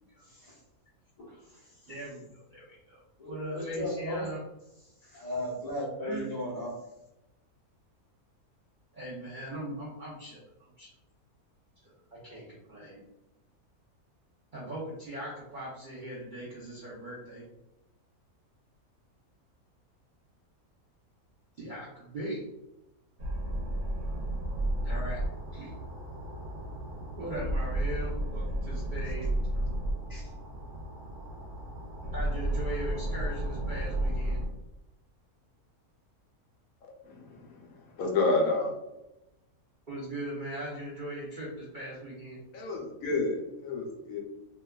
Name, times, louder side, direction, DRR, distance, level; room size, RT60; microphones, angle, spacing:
voice 1, 0.2-0.6 1.2-1.9 3.2-4.3 5.0-6.7 30.1-30.3, left 1 dB, 40° left, 0.6 m, -37 dB
voice 2, 1.9-3.0 3.3-4.4 6.0-6.2 8.9-10.9 11.8-13.0 14.5-17.4 21.6-22.4 24.8-25.2 25.5-25.7 27.2-29.3 32.1-34.4 39.9-42.4, right 1 dB, 60° right, 0.5 m, -39 dB
sound 1, 23.2-34.5, right 1 dB, 85° right, 1.1 m, -33 dB
voice 3, 37.1-37.7 38.0-38.7 42.5-44.2, left 3 dB, 75° left, 1.0 m, -29 dB
2.7 x 2.2 x 2.2 m
omnidirectional pair, 1.6 m